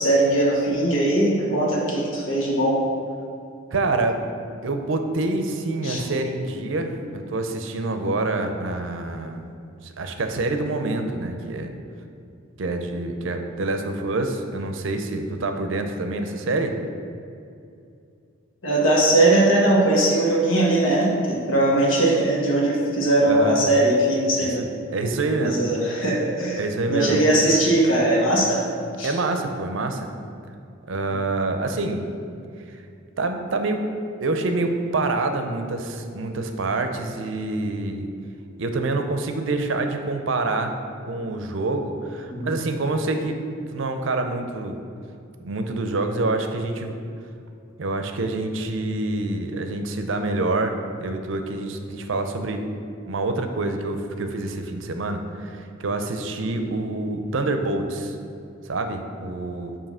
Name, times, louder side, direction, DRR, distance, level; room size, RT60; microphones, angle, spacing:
voice 1, 0.0-2.8 5.8-6.0 18.6-24.6 25.4-26.6 26.9-28.6 29.0-29.1 31.1-31.2 42.3-42.6, right 1 dB, 80° left, -3 dB, 1.2 m, -20 dB
voice 2, 3.7-4.2 4.6-9.5 9.8-11.7 12.6-16.7 23.3-23.6 24.4-25.6 26.6-27.2 29.0-30.1 30.9-32.0 33.2-33.9 34.2-38.1 38.6-40.7 41.1-43.4 43.7-44.8 45.4-47.0 47.8-52.6 53.1-58.1 58.6-59.7, right 2 dB, 70° right, 6 dB, 0.5 m, -26 dB
7.3 x 2.8 x 5.5 m, 2.5 s
head